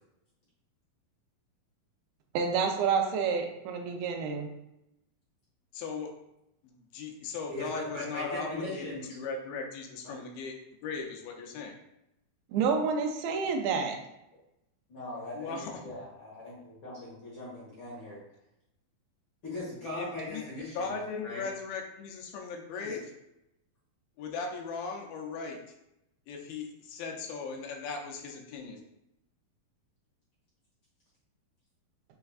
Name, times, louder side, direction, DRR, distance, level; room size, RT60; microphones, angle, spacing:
voice 1, 2.3-4.5 12.5-14.0, right 5 dB, 85° right, 4 dB, 2.4 m, -28 dB
voice 2, 5.7-6.1 6.6-10.5 10.8-11.7 15.3-15.7 19.5-19.6 20.0-20.4 20.7-23.1 24.2-25.6 26.3-28.8, left 4 dB, 85° left, 2 dB, 2.5 m, -38 dB
voice 3, 7.5-9.1 10.0-10.1 14.9-18.2 19.4-20.9 21.2-21.4 22.8-22.9, left 2 dB, 50° left, -7 dB, 1.6 m, -39 dB
6.4 x 3.4 x 2.4 m, 0.85 s
omnidirectional pair, 4.2 m